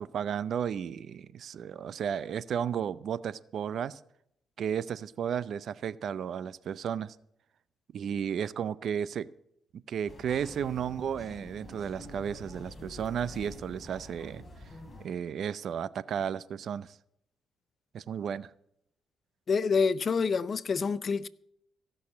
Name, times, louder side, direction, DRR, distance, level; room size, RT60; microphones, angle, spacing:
voice 1, 0.0-4.0 4.6-7.2 7.9-9.3 9.9-14.4 15.0-17.0 17.9-18.5, right 8 dB, 60° right, 0.5 m, -33 dB
sound 1, 10.1-15.1, left 1 dB, 20° left, 3.0 m, -47 dB
voice 2, 19.5-21.3, left 5 dB, 45° left, 0.5 m, -27 dB
15.5 x 6.3 x 8.5 m
cardioid pair, 90°, 0 cm